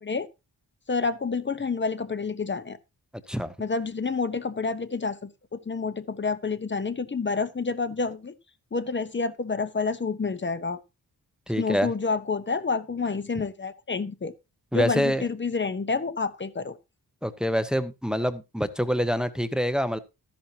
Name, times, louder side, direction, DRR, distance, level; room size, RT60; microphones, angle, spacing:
voice 1, 0.9-2.8 3.6-8.3 8.7-10.8 11.6-14.3 14.7-16.8, left 4 dB, 30° left, 0.8 m, -29 dB
voice 2, 11.5-11.9 14.7-15.2 17.2-20.0, equal, ahead, 0.8 m, -26 dB
13.0 x 10.5 x 2.8 m
wide cardioid pair, 140°, 40 cm